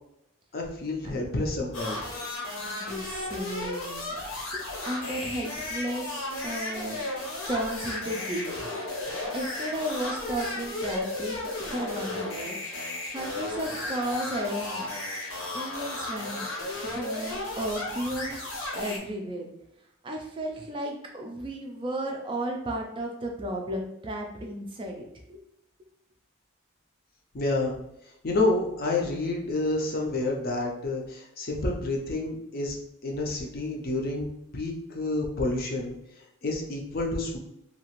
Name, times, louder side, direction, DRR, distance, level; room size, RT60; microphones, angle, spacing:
voice 1, 0.5-2.0 27.3-27.8 28.2-34.3 34.5-35.9 36.4-37.4, left 2 dB, 45° left, 0 dB, 0.5 m, -29 dB
sound 1, 1.7-19.0, left 2 dB, 75° left, 0.8 m, -34 dB
voice 2, 2.7-4.1 4.5-7.0 7.5-8.5 9.1-12.6 13.1-14.9 15.5-16.5 16.8-18.5 18.7-19.5 20.0-25.4, right 1 dB, 25° right, 1 dB, 0.3 m, -34 dB
2.8 x 2.4 x 2.9 m, 0.82 s
head